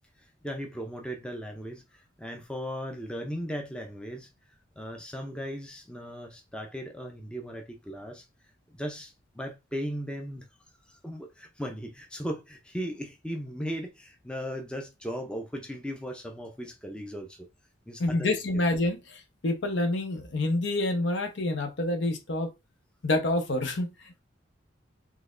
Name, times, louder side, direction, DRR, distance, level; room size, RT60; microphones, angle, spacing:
voice 1, 0.2-10.5 10.8-17.5 17.9-18.6, equal, 5° left, 0.4 m, -37 dB
voice 2, 18.0-22.5 23.0-24.2, left 2 dB, 65° left, 0.7 m, -28 dB
3.9 x 2.9 x 2.5 m
head